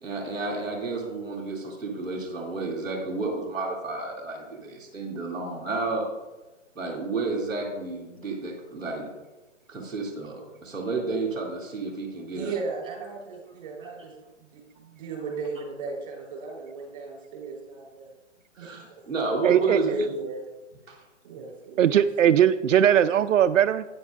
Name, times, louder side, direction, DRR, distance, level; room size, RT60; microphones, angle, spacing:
voice 1, 0.0-6.1 6.7-9.1 9.7-12.5 18.5-20.1 20.9-21.0, right 3 dB, ahead, -14 dB, 0.8 m, -31 dB
voice 2, 12.3-14.1 14.4-18.1 18.6-19.2 19.9-20.4 21.2-22.0, right 4 dB, 30° right, -2 dB, 3.6 m, -36 dB
voice 3, 19.4-19.8 21.8-23.9, right 10 dB, 80° right, 11 dB, 0.5 m, -19 dB
13.5 x 9.3 x 2.4 m, 1.1 s
hypercardioid pair, 170°, 38 cm